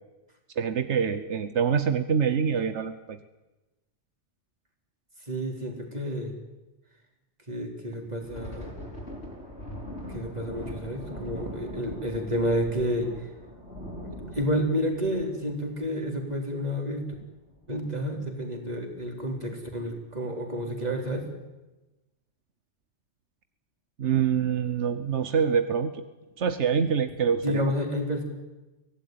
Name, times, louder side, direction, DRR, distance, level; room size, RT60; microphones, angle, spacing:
voice 1, 0.6-3.2 24.0-26.0 26.4-27.7, right 7 dB, 85° right, 10 dB, 1.3 m, -25 dB
voice 2, 5.3-6.3 7.5-8.7 10.1-13.3 14.0-17.1 17.7-21.3 27.4-28.2, equal, 35° right, 2 dB, 4.0 m, -30 dB
Thunder, 8.1-17.2 17.5-17.7 18.1-18.3 19.0-19.4, equal, 80° left, 4.7 m, -41 dB
24.0 x 16.5 x 9.4 m, 1.1 s
omnidirectional pair, 1.2 m